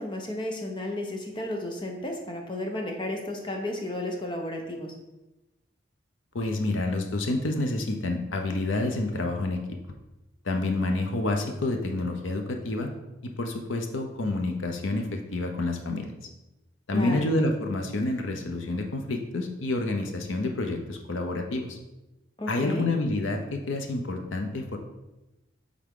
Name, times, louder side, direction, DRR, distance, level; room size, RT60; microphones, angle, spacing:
voice 1, 0.0-4.9 16.9-17.3 22.4-22.9, left 1 dB, 25° left, 2 dB, 0.8 m, -33 dB
voice 2, 6.3-9.6 10.4-12.9 13.4-16.0 16.9-21.8 22.5-24.8, left 2 dB, 90° left, 4 dB, 0.7 m, -28 dB
8.3 x 3.6 x 3.7 m, 1.0 s
head